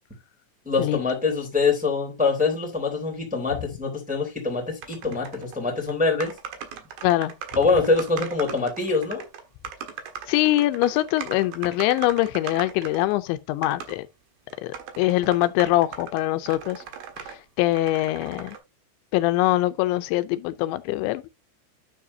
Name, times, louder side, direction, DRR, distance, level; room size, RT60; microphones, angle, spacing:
voice 1, 0.6-6.3 7.5-9.3, left 4 dB, ahead, 2.5 m, -24 dB
sound 1, 4.8-5.6 5.9-6.0 6.2-13.2 13.6-14.0 14.5-17.4 17.7-18.6, right 8 dB, 65° right, 2.9 m, -39 dB
voice 2, 7.0-7.3 10.3-14.1 14.6-16.8 17.2-18.6 19.1-21.3, left 16 dB, 85° left, 3.0 m, -23 dB
9.5 x 7.4 x 2.7 m
omnidirectional pair, 5.2 m